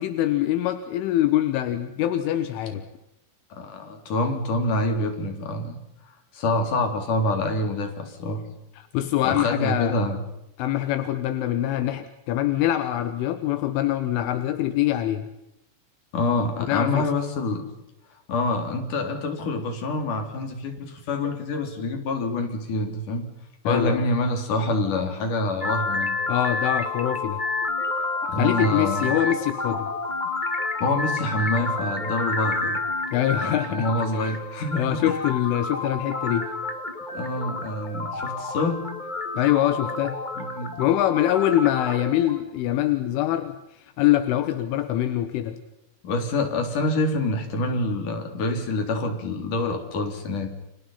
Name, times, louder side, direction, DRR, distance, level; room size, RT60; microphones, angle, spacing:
voice 1, 0.0-2.8 8.8-10.0 10.6-15.3 16.6-17.1 23.7-24.0 26.3-27.4 28.2-29.9 33.1-34.4 34.8-36.5 39.4-40.2 40.8-45.6, left 12 dB, 80° left, 10 dB, 3.7 m, -24 dB
voice 2, 3.5-5.8 6.3-8.4 9.2-10.2 16.1-17.7 18.3-23.3 23.6-26.2 28.3-29.1 30.8-32.8 33.4-35.2 37.1-38.9 40.4-40.7 46.0-50.5, left 2 dB, 45° left, 5 dB, 4.7 m, -26 dB
sound 1, 25.6-42.4, left 3 dB, 30° left, 0.9 m, -29 dB
30.0 x 27.5 x 5.7 m, 0.87 s
omnidirectional pair, 5.7 m